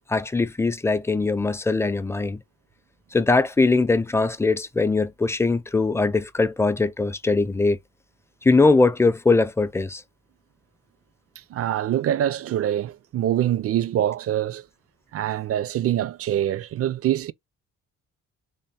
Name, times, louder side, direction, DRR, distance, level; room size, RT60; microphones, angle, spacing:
voice 1, 0.0-2.4 3.1-7.8 8.4-10.0, left 3 dB, 10° left, 0.4 m, -21 dB
voice 2, 11.5-14.6 15.1-17.3, right 11 dB, 50° right, 0.4 m, -24 dB
3.5 x 2.1 x 4.1 m
cardioid pair, 90°, 30 cm